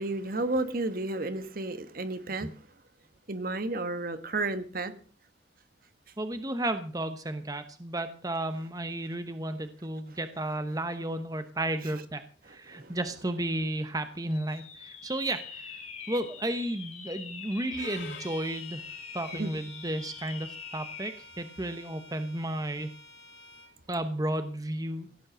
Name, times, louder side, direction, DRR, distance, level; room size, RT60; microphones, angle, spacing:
voice 1, 0.0-2.5 3.3-4.9 11.9-12.0 12.7-13.0 19.3-19.6, right 2 dB, 50° right, 11 dB, 1.4 m, -32 dB
voice 2, 6.2-18.9 19.1-23.0 23.9-25.1, right 1 dB, 20° right, 9 dB, 1.0 m, -33 dB
sound 1, 14.3-21.3, left 6 dB, 40° left, 2.4 m, -44 dB
Bowed string instrument, 17.7-23.7, left 2 dB, 75° left, 3.7 m, -48 dB
17.0 x 9.6 x 6.4 m, 0.41 s
head